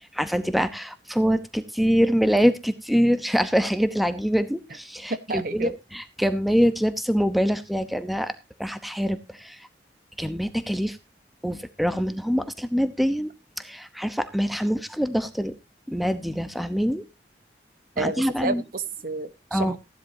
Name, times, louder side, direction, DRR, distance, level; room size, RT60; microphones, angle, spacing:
voice 1, 0.1-8.3 8.6-9.7 10.2-11.0 11.4-13.3 13.6-15.5 15.9-17.0 18.0-18.6 19.5-19.7, equal, ahead, 11 dB, 0.8 m, -24 dB
voice 2, 5.1-5.7 18.0-19.8, right 3 dB, 50° right, 12 dB, 1.0 m, -30 dB
15.5 x 11.0 x 2.7 m, 0.26 s
head